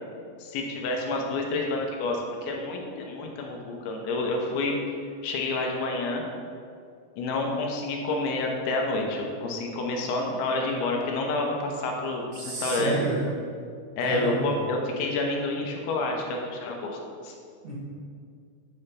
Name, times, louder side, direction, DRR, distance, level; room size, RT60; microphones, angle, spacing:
voice 1, 0.4-4.8 5.2-6.3 7.2-13.0 14.0-17.3, left 2 dB, 90° left, 1 dB, 3.1 m, -29 dB
voice 2, 12.3-13.2 14.0-14.5 17.6-17.7, right 2 dB, 65° right, -7 dB, 3.7 m, -30 dB
9.2 x 3.3 x 5.5 m, 2.3 s
omnidirectional pair, 5.3 m